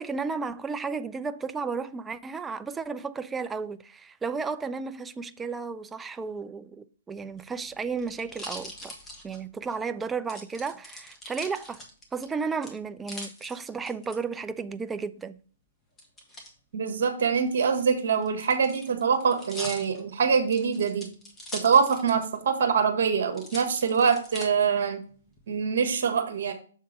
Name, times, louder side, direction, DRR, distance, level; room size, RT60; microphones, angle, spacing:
voice 1, 0.0-8.9 9.2-11.8 12.1-15.4, right 5 dB, 10° right, 0.4 m, -33 dB
sound 1, 7.2-9.8 10.3-12.3 12.6-14.2 16.0-16.5 17.5-22.4 22.7-22.8 23.3-24.5 25.1-25.6, left 1 dB, 15° left, 1.5 m, -42 dB
voice 2, 16.7-21.1 21.5-25.0 25.5-26.5, right 6 dB, 60° right, 1.4 m, -24 dB
6.9 x 3.7 x 5.1 m
hypercardioid pair, 125°, 0 cm